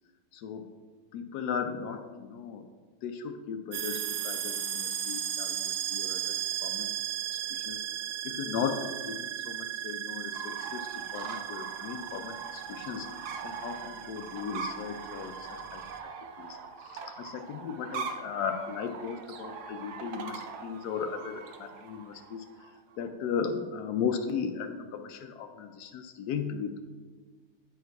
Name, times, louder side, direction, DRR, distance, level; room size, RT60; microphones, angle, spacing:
voice 1, 1.1-2.6 3.0-6.9 7.3-7.8 8.2-15.8 16.4-22.4 23.0-26.8, left 6 dB, 85° left, 6 dB, 1.2 m, -36 dB
sound 1, 3.7-16.0, right 10 dB, 65° right, 0.9 m, -36 dB
sound 2, 10.3-23.1, right 5 dB, 80° right, 1.2 m, -42 dB
9.1 x 4.7 x 4.6 m, 1.4 s
omnidirectional pair, 1.7 m